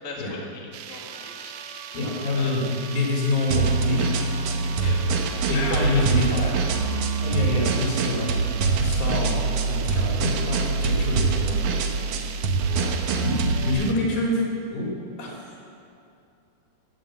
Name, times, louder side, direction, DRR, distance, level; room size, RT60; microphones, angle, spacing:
voice 1, 0.0-1.5 2.3-2.6 4.8-6.5 9.9-10.1, left 3 dB, 35° left, -3 dB, 1.5 m, -37 dB
sound 1, 0.7-13.9, right 10 dB, 90° right, 1.7 m, -40 dB
Wind instrument woodwind instrument, 1.1-8.6, right 1 dB, 20° left, 0.7 m, -45 dB
voice 2, 1.9-4.2 4.5-4.7 5.5-6.6 7.2-9.4 9.7-11.5 13.2-14.4 14.7-14.9 15.2-15.5, left 2 dB, 80° left, -3 dB, 4.9 m, -26 dB
sound 2, 3.5-13.7, right 4 dB, 75° right, 1.5 m, -24 dB
13.0 x 9.2 x 7.7 m, 2.6 s
omnidirectional pair, 4.1 m